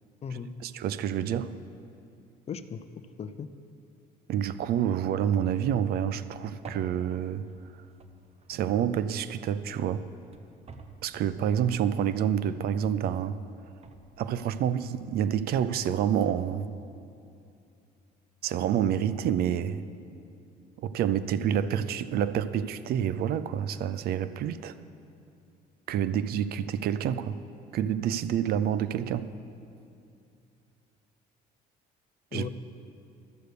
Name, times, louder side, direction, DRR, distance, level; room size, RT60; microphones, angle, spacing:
voice 1, 0.6-1.6 4.3-7.5 8.5-10.1 11.0-13.4 14.2-16.7 18.4-19.8 20.8-24.8 25.9-27.4 27.7-29.3 32.3-32.5, right 9 dB, 65° right, 0.5 m, -28 dB
voice 2, 2.5-2.8 3.2-3.5 32.3-32.5, left 7 dB, 40° left, 0.6 m, -36 dB
sound 1, 6.2-8.8 9.2-12.7 13.1-14.6, right 3 dB, 40° right, 0.9 m, -51 dB
12.0 x 7.9 x 6.8 m
cardioid pair, 110°, 17 cm